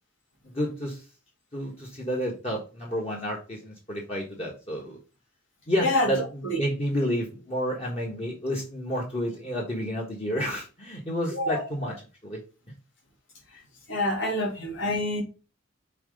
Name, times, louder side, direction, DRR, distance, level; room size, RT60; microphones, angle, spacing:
voice 1, 0.5-1.1 1.5-5.0 5.7-11.9 12.2-12.4, equal, 30° left, -2 dB, 1.3 m, -30 dB
voice 2, 13.9-15.2, left 1 dB, 80° left, 0 dB, 2.6 m, -26 dB
5.8 x 3.8 x 5.2 m, 0.33 s
head